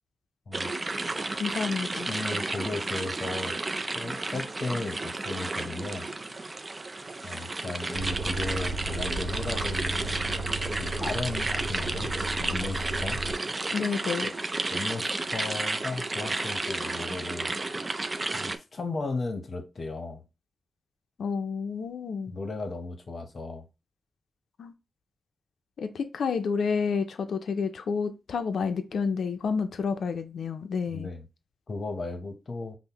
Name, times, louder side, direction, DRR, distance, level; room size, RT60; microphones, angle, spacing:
sound 1, 0.5-18.6, right 2 dB, 30° right, 0.4 m, -32 dB
voice 1, 1.3-2.1 13.7-14.3 21.2-22.4 24.6-24.7 25.8-31.1, left 5 dB, 85° left, 0.4 m, -30 dB
voice 2, 2.0-3.6 3.9-6.1 7.2-10.2 10.8-12.1 12.4-13.2 14.7-17.5 18.3-20.2 22.3-23.7 30.9-31.3 31.7-32.8, left 3 dB, 50° left, 0.7 m, -35 dB
sound 2, 7.9-13.3, right 2 dB, 85° right, 0.6 m, -35 dB
5.4 x 2.0 x 2.9 m
cardioid pair, 75°, 0 cm